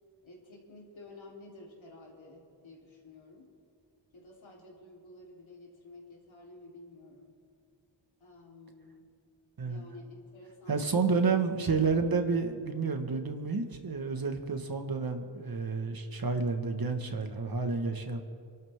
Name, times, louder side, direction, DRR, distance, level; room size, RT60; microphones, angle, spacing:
voice 1, 0.2-3.5 4.1-7.4 8.2-9.1 9.6-10.8, left 2 dB, 85° left, -3 dB, 3.7 m, -52 dB
voice 2, 10.7-18.2, right 4 dB, 50° right, 5 dB, 1.6 m, -30 dB
27.5 x 12.0 x 3.7 m, 2.3 s
wide cardioid pair, 105°, 46 cm